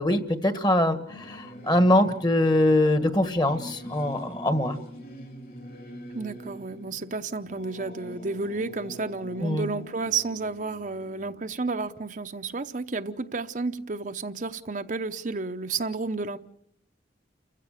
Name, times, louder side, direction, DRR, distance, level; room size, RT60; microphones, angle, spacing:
voice 1, 0.0-4.8 9.4-9.7, left 1 dB, 25° left, 1.6 m, -23 dB
Singing / Musical instrument, 1.1-12.9, equal, 55° left, 4.9 m, -45 dB
voice 2, 6.1-16.4, right 4 dB, 45° right, 0.8 m, -31 dB
29.5 x 16.0 x 6.6 m
head